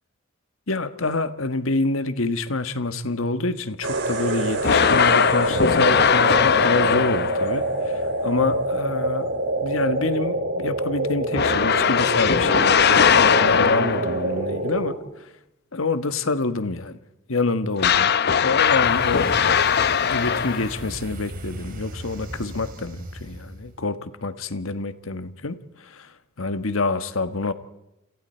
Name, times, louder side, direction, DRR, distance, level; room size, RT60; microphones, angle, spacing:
voice 1, 0.7-9.3 9.6-15.3 15.7-17.0 17.3-18.1 18.4-19.4 20.0-27.5, left 3 dB, 80° left, 10 dB, 1.4 m, -27 dB
sound 1, 3.8-14.9, right 2 dB, 65° right, 4.7 m, -26 dB
sound 2, 4.6-7.6 11.3-14.2 17.8-20.9, left 6 dB, 55° left, 0.8 m, -19 dB
sound 3, 18.5-23.8, right 1 dB, 45° right, 3.8 m, -37 dB
29.0 x 28.0 x 4.5 m, 0.91 s
head